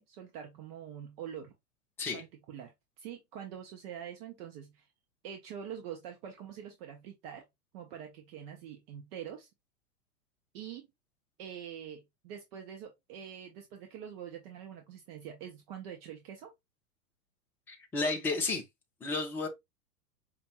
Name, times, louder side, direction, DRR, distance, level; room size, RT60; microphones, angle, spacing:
voice 1, 0.0-1.5 2.1-2.7 3.0-4.9 5.2-7.5 7.7-9.5 10.5-10.9 11.4-16.5, right 9 dB, 40° right, 0.8 m, -45 dB
voice 2, 17.7-18.6 19.0-19.5, left 3 dB, 5° left, 0.4 m, -32 dB
5.1 x 2.4 x 2.9 m
hypercardioid pair, 105°, 46 cm